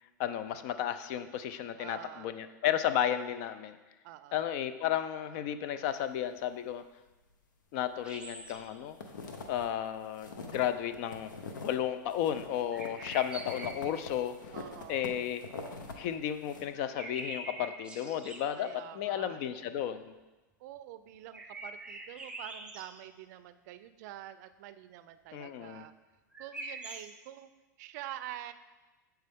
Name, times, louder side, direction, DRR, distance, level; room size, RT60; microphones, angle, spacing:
voice 1, 0.2-3.7 4.3-6.8 7.7-9.0 9.5-11.3 11.6-14.4 14.9-15.4 16.0-18.7 18.9-20.1 25.3-25.8, left 10 dB, 55° left, 11 dB, 0.4 m, -33 dB
voice 2, 1.8-2.3 4.0-4.4 14.5-15.1 18.6-19.8 20.6-25.9 26.4-27.5 27.8-28.5, right 13 dB, 60° right, 12 dB, 0.4 m, -46 dB
sound 1, 8.0-8.6 8.9-11.8 12.1-15.9 16.3-16.6, left 3 dB, 90° left, 0.8 m, -45 dB
sound 2, 8.0-8.8 12.7-14.0 16.7-18.6 21.3-22.9 26.3-27.1, right 2 dB, 10° right, 0.6 m, -44 dB
7.5 x 4.5 x 3.5 m, 1.1 s
hypercardioid pair, 120°, 10 cm